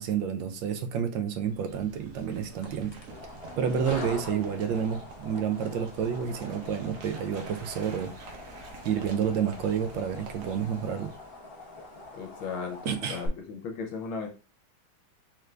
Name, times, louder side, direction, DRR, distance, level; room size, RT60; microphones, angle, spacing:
voice 1, 0.0-3.0 3.6-8.1 8.8-11.1 12.8-13.2, right 7 dB, 75° right, 1.3 m, -29 dB
sound 1, 1.4-11.3, right 4 dB, 60° right, 0.9 m, -46 dB
sound 2, 2.5-13.3, left 2 dB, 50° left, 0.7 m, -44 dB
voice 2, 12.1-14.3, left 5 dB, 80° left, 1.6 m, -36 dB
4.4 x 2.5 x 3.2 m
omnidirectional pair, 2.2 m